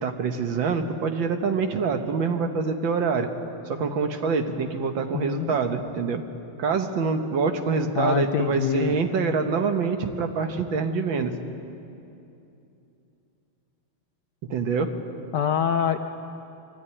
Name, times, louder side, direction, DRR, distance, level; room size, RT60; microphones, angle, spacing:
voice 1, 0.0-3.3 3.7-6.2 6.6-11.3 14.5-14.9, right 5 dB, 65° right, 6 dB, 1.8 m, -25 dB
voice 2, 5.1-5.6 8.0-9.0 15.3-16.0, left 8 dB, 70° left, 7 dB, 1.1 m, -25 dB
22.0 x 14.0 x 9.8 m, 2.8 s
omnidirectional pair, 2.4 m